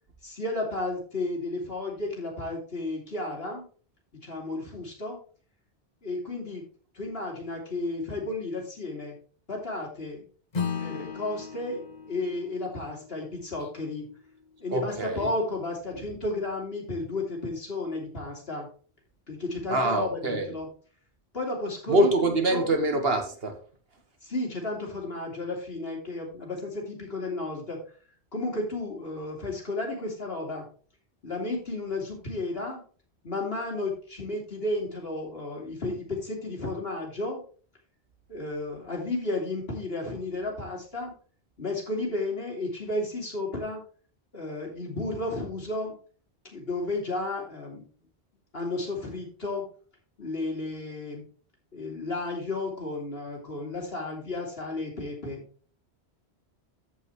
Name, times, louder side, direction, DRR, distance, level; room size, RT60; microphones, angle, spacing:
voice 1, 0.2-3.6 4.1-5.2 6.0-6.6 6.9-9.2 9.5-10.2 10.7-14.1 14.6-18.7 19.3-20.7 21.3-22.7 24.2-27.8 28.3-30.7 31.2-32.8 33.2-37.4 38.3-41.1 41.6-43.8 44.3-46.0 46.5-47.8 48.5-49.6 50.2-51.2 51.7-55.4, left 2 dB, 65° left, 3.3 m, -33 dB
Acoustic guitar / Strum, 10.5-15.3, left 6 dB, 40° left, 1.1 m, -37 dB
voice 2, 14.7-15.3 19.7-20.5 21.9-23.6, right 2 dB, 65° right, 1.8 m, -25 dB
14.0 x 5.6 x 3.2 m
omnidirectional pair, 1.1 m